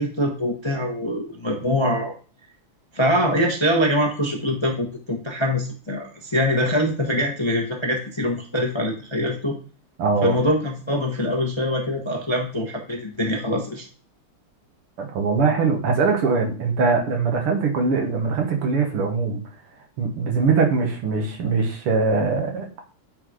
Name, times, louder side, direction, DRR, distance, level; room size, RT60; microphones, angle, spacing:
voice 1, 0.0-2.1 2.9-9.6 10.2-13.9, equal, 20° left, 1 dB, 0.7 m, -23 dB
voice 2, 10.0-10.4 15.0-19.4 20.0-22.8, right 4 dB, 85° right, 2 dB, 2.4 m, -22 dB
8.6 x 4.0 x 4.8 m, 0.39 s
omnidirectional pair, 2.4 m